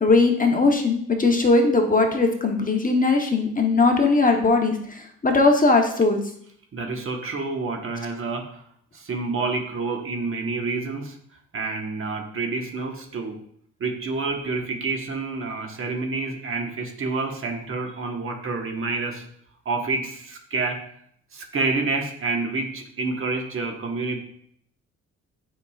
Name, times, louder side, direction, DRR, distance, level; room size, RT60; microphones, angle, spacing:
voice 1, 0.0-6.2, left 3 dB, 25° left, 3 dB, 1.0 m, -19 dB
voice 2, 6.7-8.6 8.9-11.1 11.5-13.4 13.8-19.2 19.6-20.8 21.3-24.2, right 3 dB, 45° right, 2 dB, 1.3 m, -28 dB
8.4 x 5.1 x 2.4 m, 0.67 s
cardioid pair, 90°, 30 cm